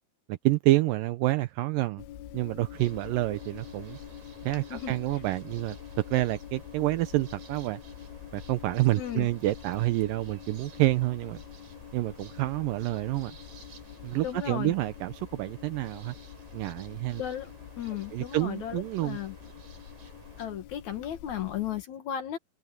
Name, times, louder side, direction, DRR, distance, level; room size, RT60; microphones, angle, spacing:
voice 1, 0.3-2.0 2.3-4.0 4.4-7.8 8.3-11.4 11.9-13.3 14.0-16.1 16.5-17.2 18.1-19.2, right 17 dB, 80° right, 2.1 m, -28 dB
sound 1, 2.0-21.8, left 11 dB, 85° left, 2.9 m, -46 dB
sound 2, 2.7-20.5, right 6 dB, 60° right, 5.7 m, -54 dB
voice 2, 9.0-9.3 14.2-14.7 17.2-17.5 17.8-19.3 20.4-22.4, left 10 dB, 60° left, 2.3 m, -35 dB
omnidirectional pair, 4.4 m